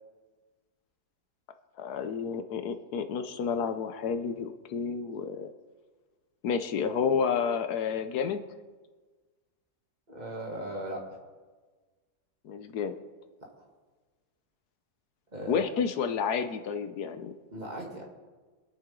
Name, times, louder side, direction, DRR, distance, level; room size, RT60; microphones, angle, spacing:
voice 1, 1.8-5.5 6.4-8.4 12.4-13.0 15.5-17.4, left 6 dB, 75° left, 9 dB, 1.3 m, -30 dB
voice 2, 10.1-11.0 15.3-15.6 17.5-18.0, right 1 dB, 25° right, -2 dB, 2.6 m, -37 dB
24.0 x 8.9 x 3.8 m, 1.4 s
omnidirectional pair, 1.7 m